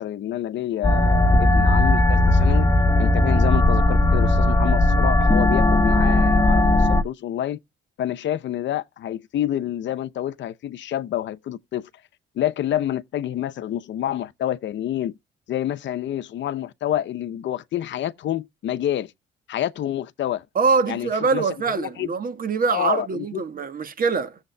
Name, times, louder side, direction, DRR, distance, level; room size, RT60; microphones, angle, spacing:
voice 1, 0.0-2.7 3.0-7.6 8.0-11.9 12.4-15.2 15.5-19.1 19.5-20.4 20.9-21.4 21.8-22.1 22.7-23.4, left 11 dB, 65° left, 0.7 m, -28 dB
sound 1, 0.8-7.0, left 1 dB, 15° left, 0.9 m, -17 dB
voice 2, 20.5-24.4, right 5 dB, 45° right, 1.4 m, -23 dB
16.0 x 7.4 x 2.2 m
cardioid pair, 90°, 20 cm